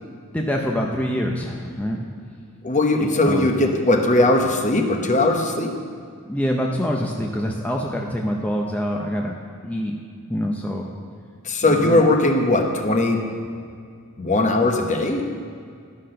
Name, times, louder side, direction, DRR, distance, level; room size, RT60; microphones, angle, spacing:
voice 1, 0.3-2.1 3.2-3.5 6.2-9.3 9.6-10.0 10.3-11.0 11.6-12.0, equal, 5° left, -1 dB, 0.6 m, -25 dB
voice 2, 2.6-5.8 11.4-13.2 14.2-15.2, left 2 dB, 35° left, 4 dB, 0.9 m, -19 dB
11.5 x 5.8 x 6.5 m, 2.3 s
head